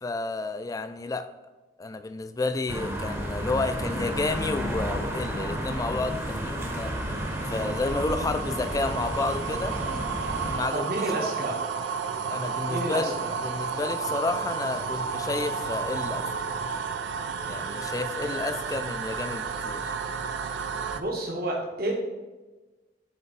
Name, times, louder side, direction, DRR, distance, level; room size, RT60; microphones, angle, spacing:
voice 1, 0.0-1.3 1.8-6.9 7.5-9.8 10.4-11.2 12.3-13.2 13.4-16.3 17.5-19.9, left 3 dB, 20° left, 10 dB, 0.3 m, -31 dB
sound 1, 2.7-10.6, equal, 15° right, 0.8 m, -32 dB
sound 2, 5.7-21.0, right 6 dB, 90° right, 0.5 m, -32 dB
voice 2, 10.7-11.6 12.7-13.3 18.2-18.3 20.9-21.9, right 2 dB, 60° right, -1 dB, 1.2 m, -30 dB
8.4 x 3.4 x 4.1 m, 1.2 s
head